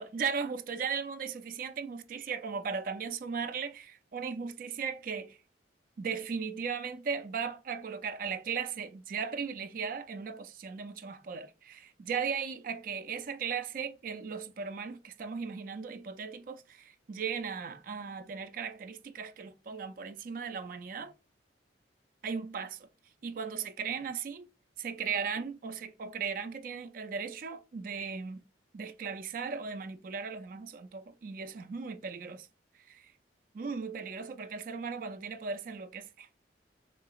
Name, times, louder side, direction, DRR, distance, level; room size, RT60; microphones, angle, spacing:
voice 1, 0.0-5.4 6.0-21.1 22.2-22.9 23.2-24.5 24.8-28.4 28.7-32.5 32.8-33.1 33.5-36.3, right 6 dB, 45° right, 0.4 m, -37 dB
3.7 x 2.8 x 2.4 m
head